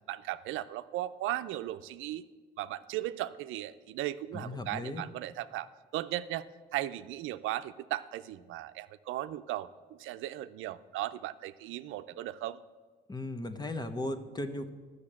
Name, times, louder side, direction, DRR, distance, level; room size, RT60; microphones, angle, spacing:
voice 1, 0.1-2.2 2.6-6.5 6.7-9.7 10.0-12.6, right 14 dB, 90° right, 12 dB, 0.5 m, -37 dB
voice 2, 4.3-5.1 13.1-14.7, left 2 dB, 20° left, 9 dB, 1.0 m, -36 dB
12.0 x 6.6 x 8.7 m, 1.4 s
cardioid pair, 90°, 20 cm